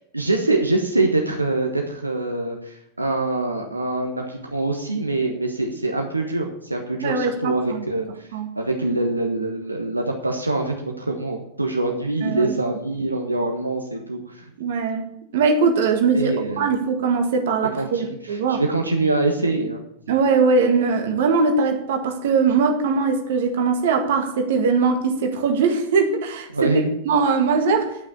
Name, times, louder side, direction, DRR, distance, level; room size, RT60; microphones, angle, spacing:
voice 1, 0.1-8.3 8.6-14.4 16.1-16.7 17.7-19.8 26.5-26.9, right 2 dB, 85° right, 2 dB, 1.2 m, -24 dB
voice 2, 7.0-7.8 8.3-8.5 12.2-12.5 14.6-15.1 15.3-18.6 20.1-26.7 27.1-27.9, right 4 dB, 55° right, 4 dB, 1.8 m, -21 dB
10.5 x 6.1 x 8.3 m, 0.76 s
figure-of-eight pair, 90°, 0 cm